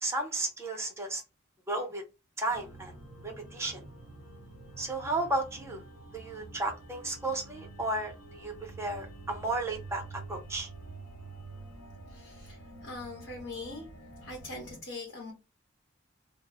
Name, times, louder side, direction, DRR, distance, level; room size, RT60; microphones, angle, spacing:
voice 1, 0.0-1.2 1.7-2.0 2.4-2.9 3.2-3.8 4.8-5.8 6.1-10.0 10.3-10.7, right 2 dB, 10° right, 0.5 m, -33 dB
sound 1, 2.5-14.8, right 2 dB, 80° left, 0.9 m, -48 dB
voice 2, 12.1-13.8 14.2-15.3, left 2 dB, 55° left, 0.9 m, -42 dB
2.0 x 2.0 x 3.3 m
head